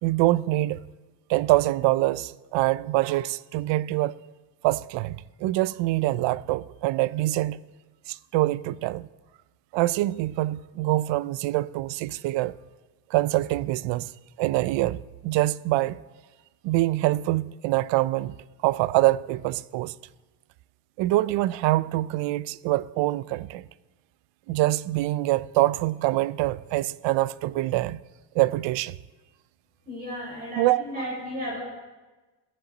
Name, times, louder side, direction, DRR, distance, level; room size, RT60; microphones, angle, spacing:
voice 1, 0.0-0.8 1.3-4.1 4.6-7.6 8.1-9.1 9.7-12.6 13.1-14.1 14.4-16.0 16.6-18.3 18.6-19.9 21.0-23.7 24.5-28.0 28.3-29.0 30.6-30.8, right 17 dB, 70° right, 0.6 m, -25 dB
voice 2, 29.8-31.6, equal, 20° right, 5.5 m, -34 dB
14.5 x 14.0 x 4.0 m
cardioid pair, 150°, 46 cm